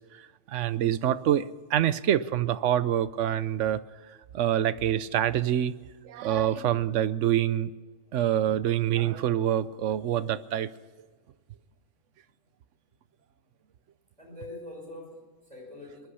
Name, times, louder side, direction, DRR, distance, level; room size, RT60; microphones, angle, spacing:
voice 1, 0.1-3.8 4.3-5.8 6.0-7.7 8.1-10.7, right 11 dB, 65° right, 15 dB, 0.9 m, -26 dB
voice 2, 14.2-16.1, left 2 dB, 25° right, 0 dB, 5.2 m, -44 dB
21.5 x 11.5 x 5.7 m, 1.4 s
omnidirectional pair, 1.4 m